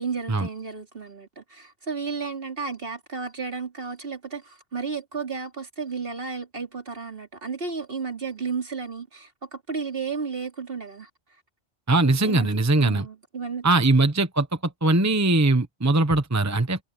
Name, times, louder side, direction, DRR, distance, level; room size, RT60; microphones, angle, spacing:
voice 1, 0.0-11.1 12.0-13.7, right 5 dB, 50° right, 3.3 m, -33 dB
voice 2, 11.9-13.0 13.6-14.5 14.8-16.8, right 2 dB, 15° right, 1.0 m, -20 dB
omnidirectional pair, 1.2 m